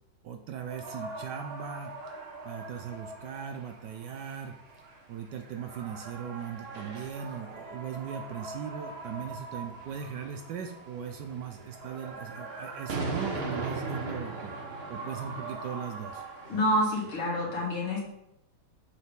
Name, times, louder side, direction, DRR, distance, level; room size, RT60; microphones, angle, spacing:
voice 1, 0.2-1.9 2.4-4.6 5.1-14.5 14.9-16.2, right 7 dB, 70° right, 5 dB, 1.1 m, -39 dB
sound 1, 0.6-17.2, right 3 dB, 40° right, 1.0 m, -40 dB
voice 2, 16.5-18.0, equal, 80° left, -4 dB, 3.1 m, -27 dB
7.2 x 6.8 x 3.6 m, 0.84 s
omnidirectional pair, 2.3 m